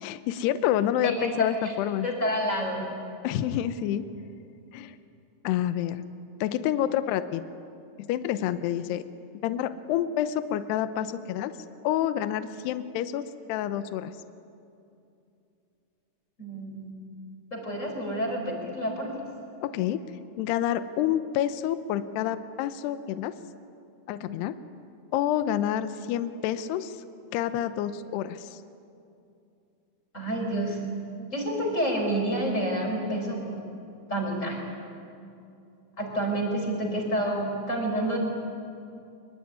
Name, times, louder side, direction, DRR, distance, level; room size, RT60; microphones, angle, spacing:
voice 1, 0.0-2.1 3.2-4.1 4.7-5.0 5.4-6.0 6.4-7.5 8.0-9.0 9.4-11.5 11.8-14.1 19.6-20.0 20.4-23.4 24.1-24.6 25.1-27.0 27.3-28.6, left 11 dB, 75° left, 11 dB, 2.8 m, -28 dB
voice 2, 1.0-1.7 2.0-2.8 16.4-17.0 17.5-19.1 30.1-30.8 31.3-33.6 34.1-34.6 36.0-38.2, right 1 dB, 15° left, 0 dB, 4.6 m, -29 dB
25.0 x 23.5 x 9.7 m, 2.6 s
omnidirectional pair, 5.1 m